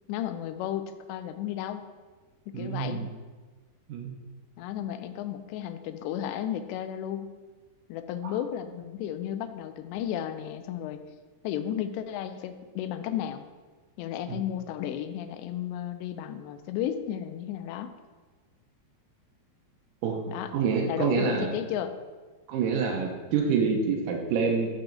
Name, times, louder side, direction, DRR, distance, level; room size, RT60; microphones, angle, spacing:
voice 1, 0.1-1.8 2.5-3.1 4.6-7.3 7.9-11.0 11.4-13.4 14.0-17.9 20.3-20.5 20.9-21.9, left 10 dB, 85° left, 10 dB, 2.8 m, -33 dB
voice 2, 2.5-3.1 3.9-4.2 8.2-8.3 14.3-14.4 20.0-20.2 20.5-21.5 22.5-24.7, right 5 dB, 90° right, 1 dB, 1.8 m, -27 dB
7.2 x 6.7 x 3.8 m, 1.3 s
omnidirectional pair, 4.9 m